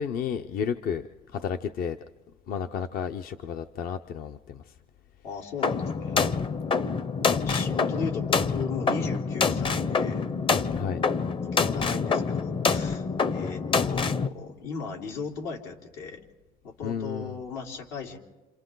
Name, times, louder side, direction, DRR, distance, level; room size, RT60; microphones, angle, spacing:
voice 1, 0.0-2.0 2.5-4.8 6.1-6.3 10.7-11.0 16.8-17.4, left 7 dB, 60° left, 8 dB, 0.8 m, -32 dB
voice 2, 5.2-6.2 7.2-10.3 11.4-13.1 13.3-16.2 16.6-18.2, left 5 dB, 90° left, 0 dB, 3.7 m, -37 dB
sound 1, 5.6-14.3, left 5 dB, 30° left, 0.7 m, -26 dB
29.0 x 27.5 x 3.9 m, 1.2 s
cardioid pair, 115°, 17 cm